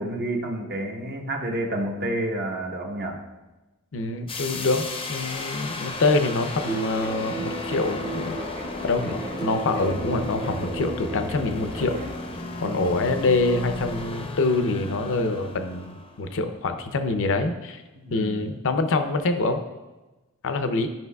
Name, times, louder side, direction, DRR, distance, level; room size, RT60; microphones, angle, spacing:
voice 1, 0.0-3.2 12.5-12.8 17.9-18.5, right 1 dB, 50° right, 1 dB, 1.1 m, -30 dB
voice 2, 3.9-8.4 8.8-12.0 12.6-17.8 18.1-19.6 20.4-20.9, left 3 dB, 60° left, 8 dB, 0.6 m, -25 dB
sound 1, 4.3-16.3, left 2 dB, 25° left, 0.6 m, -35 dB
sound 2, 6.7-12.1, right 3 dB, 20° right, 0.8 m, -34 dB
12.0 x 5.5 x 2.3 m, 1.1 s
head